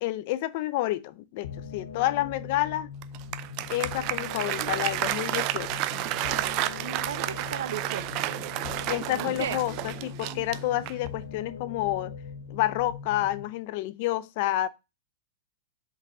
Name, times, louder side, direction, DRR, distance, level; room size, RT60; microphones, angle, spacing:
voice 1, 0.0-2.9 3.7-5.8 8.9-12.2 12.5-14.7, left 15 dB, 50° left, 0.5 m, -29 dB
sound 1, 1.4-13.4, left 6 dB, 80° left, 0.9 m, -41 dB
Applause, 3.0-11.2, right 15 dB, 40° right, 0.4 m, -31 dB
voice 2, 6.8-8.6 9.2-9.6, right 9 dB, 80° right, 0.7 m, -36 dB
5.3 x 4.0 x 4.7 m
supercardioid pair, 155°, 0 cm